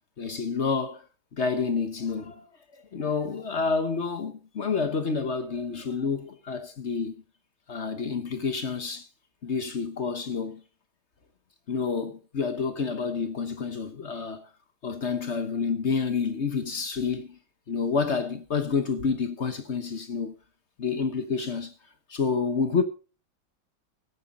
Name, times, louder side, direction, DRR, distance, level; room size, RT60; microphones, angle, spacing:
voice 1, 0.2-1.0 1.3-2.5 2.9-7.2 7.7-9.1 9.4-10.6 11.7-14.4 14.8-17.4 17.7-20.4 20.8-21.7 22.1-22.8, left 5 dB, 45° left, 1.0 m, -29 dB
15.5 x 9.1 x 4.1 m
omnidirectional pair, 2.2 m